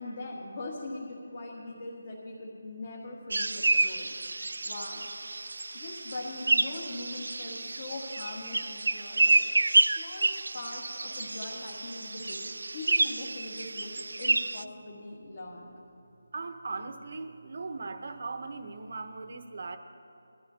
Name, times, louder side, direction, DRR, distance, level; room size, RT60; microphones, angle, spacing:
voice 1, 0.0-4.1 4.6-5.2 5.7-9.4 9.9-15.7, left 2 dB, 35° left, -3 dB, 1.7 m, -41 dB
sound 1, 3.3-14.6, right 2 dB, 75° right, 0.4 m, -29 dB
voice 2, 16.3-19.8, right 3 dB, 40° right, 8 dB, 0.9 m, -38 dB
21.5 x 13.0 x 2.8 m, 2.8 s
figure-of-eight pair, 175°, 0 cm